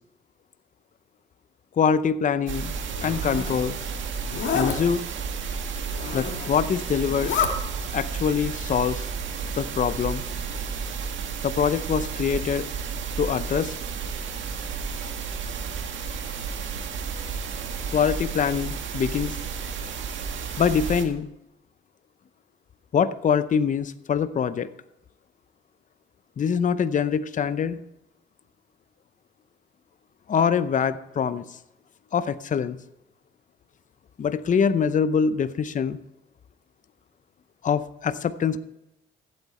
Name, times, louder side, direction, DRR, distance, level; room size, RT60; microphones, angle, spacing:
voice 1, 1.8-2.7 3.0-3.8 4.5-5.0 6.1-7.3 7.9-9.1 9.5-10.2 11.4-12.7 13.2-13.7 17.9-19.4 20.6-21.3 22.9-24.7 26.4-27.8 30.3-31.4 32.1-32.8 34.2-36.0 37.6-38.6, left 7 dB, 40° left, 13 dB, 0.7 m, -24 dB
sound 1, 2.5-21.1, right 6 dB, 70° right, 1.8 m, -32 dB
Zipper (clothing), 2.9-3.6 4.2-4.8 5.9-6.6 7.0-7.5, left 7 dB, 70° left, 1.9 m, -29 dB
15.0 x 8.3 x 4.3 m, 0.88 s
cardioid pair, 90°, 20 cm